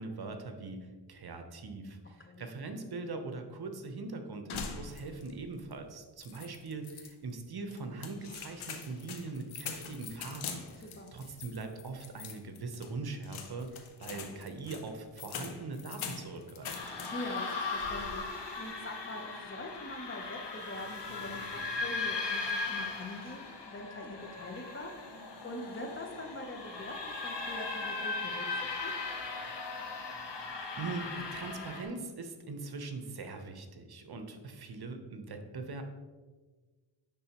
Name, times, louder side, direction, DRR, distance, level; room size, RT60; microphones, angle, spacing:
voice 1, 0.0-16.9 30.8-35.8, right 3 dB, 50° right, 6 dB, 0.9 m, -41 dB
sound 1, 4.5-5.4 5.7-5.8 6.2-7.1 7.7-17.4 17.7-18.3, left 6 dB, 75° left, 0.8 m, -44 dB
voice 2, 10.8-11.1 17.1-28.9, left 1 dB, 25° left, 4 dB, 0.8 m, -44 dB
sound 2, 16.6-31.8, left 3 dB, 55° left, 1.2 m, -38 dB
10.0 x 3.8 x 3.0 m, 1.3 s
cardioid pair, 70°, 49 cm